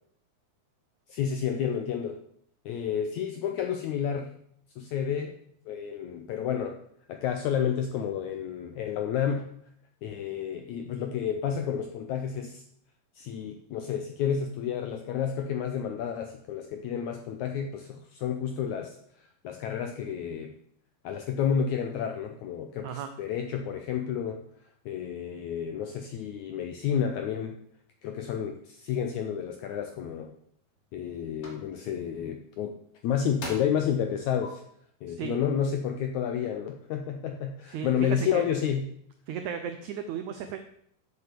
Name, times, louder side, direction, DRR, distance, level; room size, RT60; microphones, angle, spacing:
voice 1, 1.1-2.2 2.6-4.3 4.8-5.4 5.7-6.8 7.1-9.5 10.0-12.6 13.1-20.5 21.0-24.4 24.8-27.6 28.0-30.3 30.9-32.7 33.0-34.6 35.0-38.9, left 8 dB, 80° left, 5 dB, 1.7 m, -30 dB
sound 1, 30.1-30.2 30.7-31.0 31.4-31.6 32.8-32.9 33.4-33.8 34.4-34.5, left 1 dB, 40° left, 3.0 m, -39 dB
voice 2, 35.1-35.4 37.7-37.9 38.3-38.4 39.3-40.6, right 8 dB, 90° right, 8 dB, 1.6 m, -35 dB
8.3 x 6.9 x 6.8 m, 0.68 s
omnidirectional pair, 4.2 m